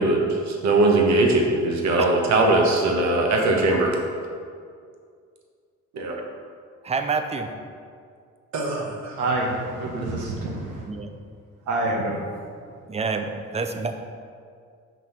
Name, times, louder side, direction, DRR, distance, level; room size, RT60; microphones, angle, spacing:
voice 1, 0.0-3.9 5.9-6.2 8.5-9.2, right 2 dB, 65° right, 0 dB, 1.0 m, -21 dB
voice 2, 6.8-7.5 10.9-11.1 12.9-14.0, right 4 dB, 20° right, 6 dB, 0.5 m, -27 dB
voice 3, 9.2-10.8 11.7-12.2, right 2 dB, 85° right, -1 dB, 1.2 m, -26 dB
6.0 x 3.0 x 5.6 m, 2.2 s
cardioid pair, 90°, 30 cm